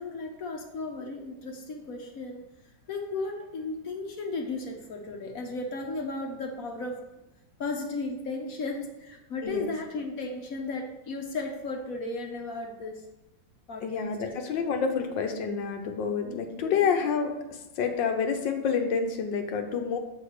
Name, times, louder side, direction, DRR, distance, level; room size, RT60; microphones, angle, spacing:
voice 1, 0.0-2.4 2.9-7.0 7.6-13.0 13.7-13.8 14.2-14.5 16.1-16.7, left 3 dB, 55° left, 2 dB, 1.2 m, -35 dB
voice 2, 9.4-9.7 13.8-20.0, left 6 dB, 75° left, 5 dB, 1.5 m, -28 dB
6.5 x 4.8 x 6.5 m, 0.94 s
omnidirectional pair, 2.1 m